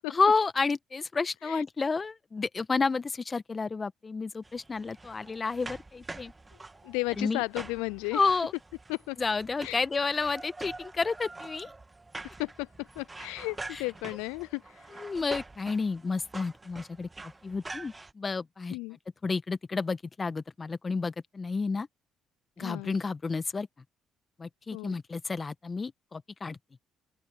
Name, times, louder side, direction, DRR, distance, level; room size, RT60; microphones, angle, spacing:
voice 1, 0.1-6.3 7.2-7.4 8.1-8.5 9.2-11.7 13.7-13.8 14.9-17.1 17.4-18.8 19.2-21.9 22.6-23.7 24.4-26.6, left 4 dB, 35° left, 1.5 m, -30 dB
sound 1, 4.4-18.1, right 3 dB, 25° right, 2.1 m, -45 dB
voice 2, 6.8-8.2 8.9-9.2 9.6-9.8 12.4-15.0 18.7-19.0 22.6-23.0 24.7-25.0, left 26 dB, 80° left, 0.4 m, -34 dB
open air
hypercardioid pair, 50°, 0 cm